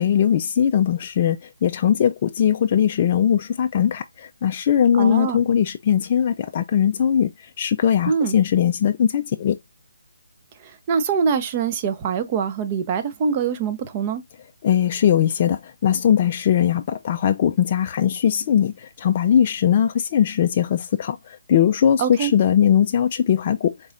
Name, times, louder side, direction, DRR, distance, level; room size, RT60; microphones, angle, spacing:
voice 1, 0.0-9.6 14.6-23.7, left 9 dB, 35° left, 0.3 m, -20 dB
voice 2, 4.9-5.4 8.1-8.4 10.6-14.2 22.0-22.3, right 6 dB, 30° right, 0.6 m, -24 dB
4.0 x 3.7 x 2.5 m
figure-of-eight pair, 150°, 0 cm